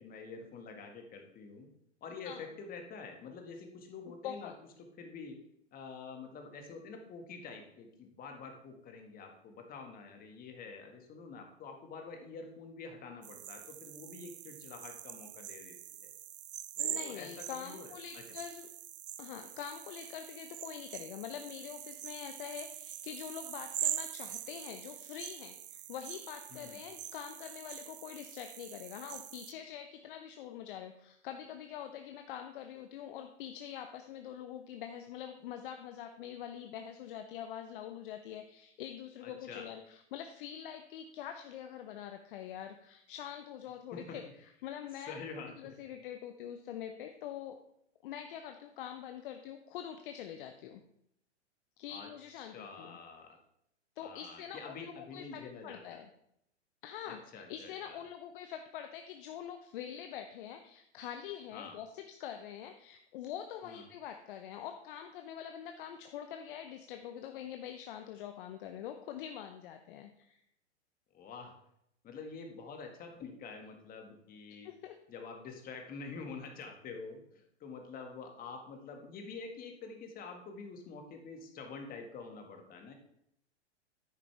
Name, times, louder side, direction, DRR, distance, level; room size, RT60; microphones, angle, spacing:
voice 1, 0.0-1.7 2.0-4.5 5.0-5.4 5.7-16.1 16.8-18.2 26.5-26.8 39.2-39.6 43.9-44.2 45.0-45.8 51.9-53.4 54.0-55.8 57.1-58.0 61.5-61.8 63.6-63.8 71.1-71.5 72.0-74.7 75.1-82.9, left 4 dB, 25° left, 4 dB, 1.7 m, -47 dB
voice 2, 4.2-4.5 16.8-18.7 19.2-47.6 48.0-50.8 51.8-53.0 54.0-56.1 56.8-70.4 74.6-75.0, left 9 dB, 50° left, 6 dB, 0.8 m, -45 dB
sound 1, 13.2-29.5, right 11 dB, 65° right, 0.7 m, -43 dB
10.0 x 8.6 x 3.4 m, 0.74 s
hypercardioid pair, 110°, 35 cm